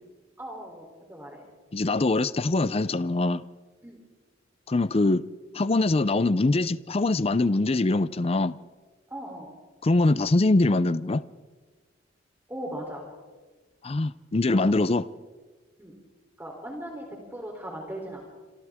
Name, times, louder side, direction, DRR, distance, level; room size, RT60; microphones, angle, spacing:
voice 1, 0.4-1.4 3.8-4.0 9.1-9.5 12.5-13.0 14.5-14.6 15.8-15.9 16.4-18.2, right 1 dB, 10° right, 3.4 m, -38 dB
voice 2, 1.7-3.4 4.7-5.3 5.5-8.6 9.8-11.2 13.8-15.1, left 2 dB, 30° left, 0.5 m, -23 dB
27.5 x 26.5 x 3.6 m
head